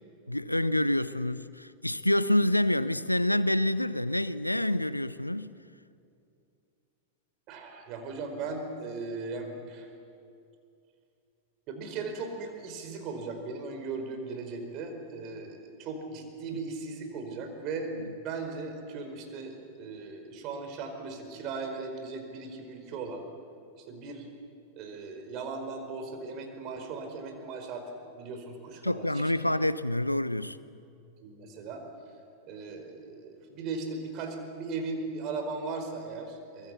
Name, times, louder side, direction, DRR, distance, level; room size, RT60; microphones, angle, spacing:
voice 1, 0.3-5.5 28.8-30.6, left 1 dB, 85° left, 0.6 m, -27 dB
voice 2, 7.5-9.9 11.7-23.2 23.8-24.3 24.8-29.5 31.2-31.8 32.5-36.7, right 4 dB, 40° right, 4.7 m, -38 dB
23.5 x 22.5 x 8.3 m
figure-of-eight pair, 90°, 0 cm